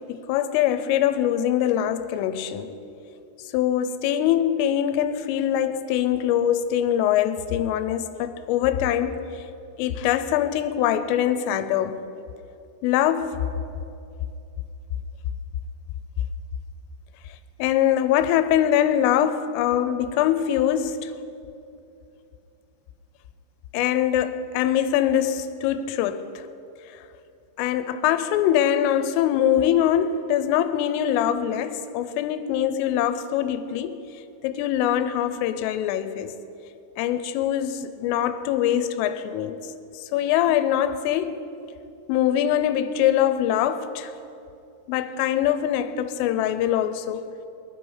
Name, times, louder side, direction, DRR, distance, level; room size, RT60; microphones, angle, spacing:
voice 1, 0.0-2.8 3.5-9.2 9.8-12.0 12.8-13.4 17.6-21.1 23.7-26.5 27.6-34.0 34.4-36.4 37.0-39.6 40.0-41.4 42.1-44.1 44.9-47.2, left 10 dB, 85° left, 3.2 m, -23 dB
19.5 x 12.0 x 5.6 m
omnidirectional pair, 5.8 m